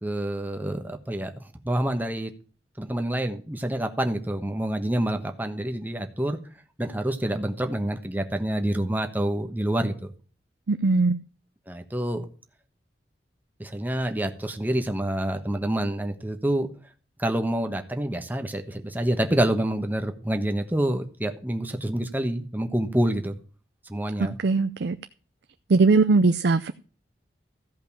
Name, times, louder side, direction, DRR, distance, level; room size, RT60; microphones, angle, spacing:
voice 1, 0.0-2.3 2.8-6.4 6.8-10.1 11.7-12.2 13.6-16.7 17.2-23.4 23.9-24.4, right 1 dB, 10° right, 1.2 m, -27 dB
voice 2, 10.7-11.2 24.2-25.0 25.7-26.7, right 3 dB, 70° right, 0.5 m, -20 dB
14.5 x 5.2 x 7.2 m
head